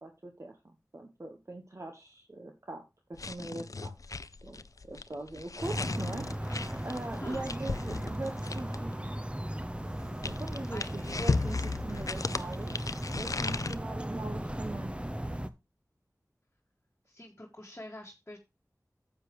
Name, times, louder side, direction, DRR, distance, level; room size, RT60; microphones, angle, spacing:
voice 1, 0.0-2.8 3.3-3.9 4.4-6.3 6.8-9.2 10.2-14.9, right 2 dB, 50° right, 4 dB, 1.3 m, -41 dB
sound 1, 3.1-8.9 9.8-13.8, left 3 dB, 65° left, 0.5 m, -35 dB
sound 2, 5.6-15.5, right 1 dB, 15° right, 0.7 m, -37 dB
voice 2, 7.2-7.5 10.7-11.2 17.1-18.4, left 1 dB, 30° left, -2 dB, 1.8 m, -45 dB
9.8 x 7.6 x 3.1 m, 0.25 s
wide cardioid pair, 55°, 6 cm